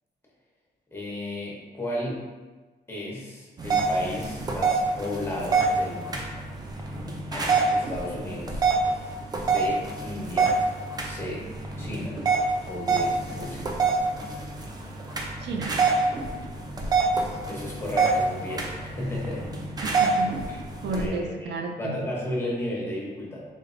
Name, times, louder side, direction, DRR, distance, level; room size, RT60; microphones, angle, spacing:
voice 1, 0.9-2.3 2.9-6.2 7.3-8.7 9.4-10.6 11.0-11.5 11.8-12.3 12.7-13.7 17.0-19.5 20.5-20.6 20.9-23.5, left 1 dB, 15° left, -5 dB, 0.8 m, -34 dB
sound 1, 3.6-21.1, right 4 dB, 25° right, 0.4 m, -26 dB
voice 2, 15.4-15.8 19.8-20.6 20.8-22.0, right 3 dB, 90° right, 4 dB, 0.4 m, -32 dB
3.9 x 3.2 x 2.5 m, 1.3 s
wide cardioid pair, 155°, 17 cm